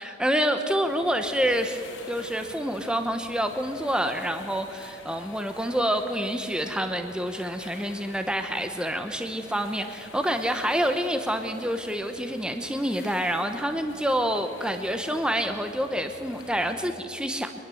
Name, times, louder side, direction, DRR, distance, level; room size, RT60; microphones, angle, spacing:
voice 1, 0.0-17.6, equal, 5° right, 7 dB, 0.9 m, -27 dB
sound 1, 0.8-16.7, left 2 dB, 60° left, 5.2 m, -47 dB
24.0 x 21.0 x 7.8 m, 2.5 s
head